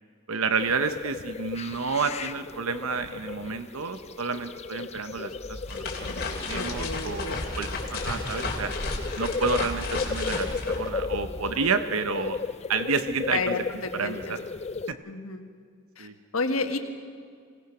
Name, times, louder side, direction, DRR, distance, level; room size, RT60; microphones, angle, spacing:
voice 1, 0.3-6.1 6.4-8.7 9.2-12.4 12.7-13.5 13.9-14.4 14.9-15.0 16.0-16.1, right 5 dB, 80° right, 10 dB, 0.8 m, -30 dB
sound 1, 0.6-14.9, left 4 dB, 30° left, 0.5 m, -35 dB
sound 2, 5.3-11.7, left 2 dB, 50° left, 3.2 m, -33 dB
voice 2, 6.5-7.5 13.3-14.4 15.0-15.5 16.0-16.1 16.3-16.8, left 3 dB, 80° left, 6 dB, 1.8 m, -31 dB
25.0 x 18.0 x 6.0 m, 2.1 s
head